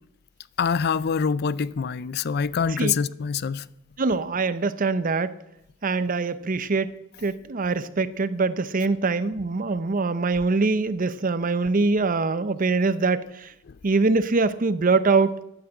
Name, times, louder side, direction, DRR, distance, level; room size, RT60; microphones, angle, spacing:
voice 1, 0.6-3.6, left 6 dB, 55° left, 0.4 m, -25 dB
voice 2, 4.0-5.3 5.8-6.9 7.2-13.5 13.8-15.4, right 3 dB, 45° right, 0.7 m, -23 dB
11.0 x 9.7 x 7.9 m
head